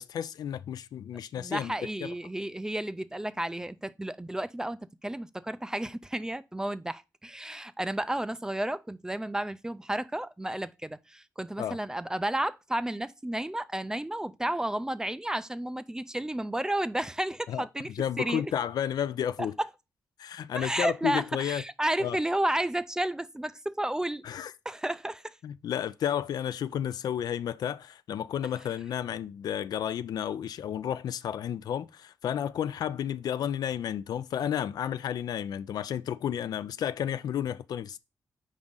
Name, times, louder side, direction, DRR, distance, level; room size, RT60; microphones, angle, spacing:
voice 1, 0.0-1.7 2.0-2.1 11.6-11.8 17.5-19.6 20.2-21.6 22.0-22.2 24.2-24.5 25.4-38.0, left 9 dB, 80° left, 0.4 m, -32 dB
voice 2, 1.3-18.4 20.6-24.2 24.7-25.3, right 1 dB, 10° right, 0.3 m, -32 dB
5.0 x 3.7 x 5.4 m
cardioid pair, 110°, 7 cm